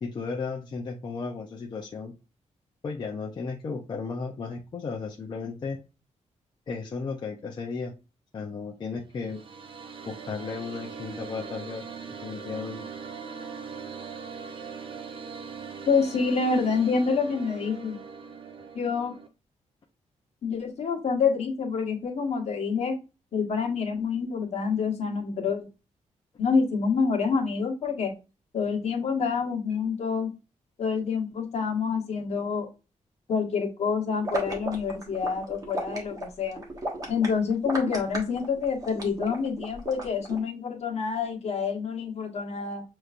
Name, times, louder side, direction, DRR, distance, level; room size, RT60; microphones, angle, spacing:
voice 1, 0.0-2.1 2.8-5.8 6.7-7.9 8.3-9.4 10.1-11.8 12.2-12.8, left 4 dB, 35° left, 0 dB, 0.5 m, -34 dB
sound 1, 9.0-19.3, right 5 dB, 45° right, 0.6 m, -41 dB
voice 2, 15.9-18.0 18.7-19.1 20.4-22.9 23.3-25.7 26.4-28.1 28.5-30.3 30.8-32.7 33.3-36.6 37.1-42.8, left 5 dB, 60° left, 0 dB, 1.3 m, -27 dB
sound 2, 34.2-40.4, right 1 dB, 30° right, 1.2 m, -34 dB
6.6 x 3.1 x 2.4 m, 0.29 s
wide cardioid pair, 175°, 13 cm